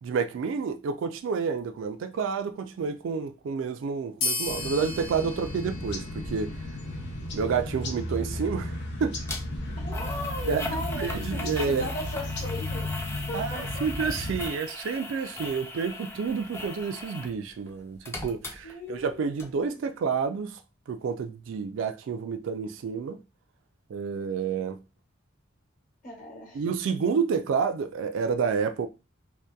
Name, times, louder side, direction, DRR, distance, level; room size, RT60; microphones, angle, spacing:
voice 1, 0.0-6.5 7.3-9.2 10.5-11.9 13.3-20.6 20.9-23.2 23.9-24.8 26.5-28.9, right 5 dB, 70° right, 0.3 m, -29 dB
sound 1, 4.2-7.2, left 3 dB, 80° left, 0.8 m, -35 dB
sound 2, 4.4-14.5, left 1 dB, 60° left, 0.5 m, -34 dB
sound 3, 9.3-9.4 9.9-17.4 17.7-19.1 19.4-19.5, left 2 dB, 15° left, 0.3 m, -39 dB
voice 2, 9.8-12.9 13.3-13.8 18.3-19.2 26.0-26.6, left 1 dB, 40° left, 1.0 m, -38 dB
2.6 x 2.1 x 2.2 m
head